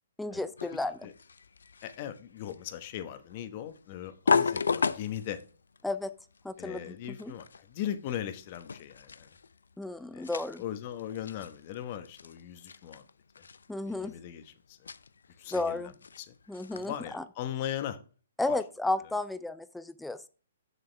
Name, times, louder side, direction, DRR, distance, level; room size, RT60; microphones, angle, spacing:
voice 1, 0.2-1.0 5.8-6.1 6.4-7.3 9.8-10.6 13.7-14.1 15.5-15.9 16.5-17.2 18.4-20.3, left 2 dB, 5° left, 0.3 m, -33 dB
sound 1, 0.6-17.1, left 5 dB, 85° left, 0.5 m, -36 dB
voice 2, 1.8-5.4 6.6-9.3 10.1-13.0 13.8-14.9 15.4-15.9 16.2-16.4 16.7-18.0 18.5-18.6, left 11 dB, 40° left, 1.1 m, -39 dB
6.9 x 6.8 x 3.3 m
hypercardioid pair, 145°, 0 cm